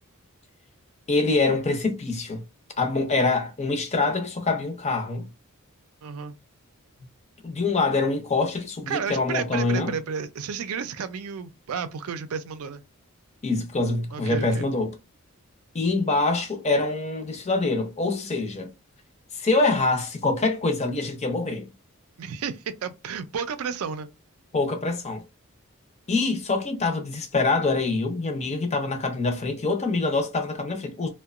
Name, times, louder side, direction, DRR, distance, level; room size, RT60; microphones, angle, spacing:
voice 1, 1.1-2.4 2.8-5.3 7.4-9.9 13.4-14.9 15.7-18.7 19.3-21.7 24.5-25.2 26.1-31.1, left 3 dB, 30° left, 0.6 m, -25 dB
voice 2, 6.0-6.4 8.9-12.8 14.1-14.6 22.2-24.1, right 6 dB, 70° right, 0.4 m, -32 dB
2.8 x 2.1 x 2.4 m
head